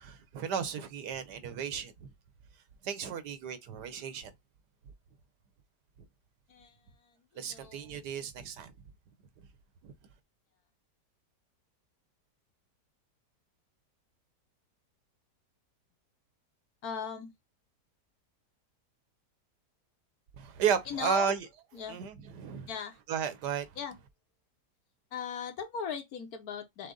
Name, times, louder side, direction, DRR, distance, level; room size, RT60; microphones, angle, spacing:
voice 1, 0.0-2.1 2.8-4.3 7.3-8.7 9.8-9.9 20.4-21.5 21.9-22.7 23.1-23.8, right 7 dB, 85° right, 1.4 m, -34 dB
voice 2, 7.0-8.0 16.8-17.3 20.9-21.4 21.7-22.0 22.7-23.0 23.8-24.0 25.1-26.9, left 7 dB, 65° left, 1.3 m, -39 dB
6.4 x 2.1 x 3.8 m
omnidirectional pair, 1.8 m